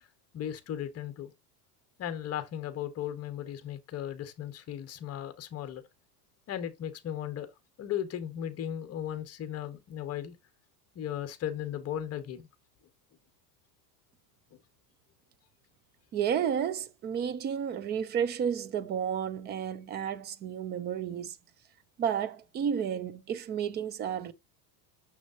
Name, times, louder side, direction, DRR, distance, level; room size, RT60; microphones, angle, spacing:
voice 1, 0.3-1.3 2.0-5.8 6.5-7.5 7.8-10.4 10.9-12.5, left 10 dB, 30° left, 1.2 m, -36 dB
voice 2, 16.1-21.4 22.0-24.3, right 8 dB, 25° right, 0.4 m, -31 dB
6.7 x 6.2 x 2.7 m
supercardioid pair, 150°, 48 cm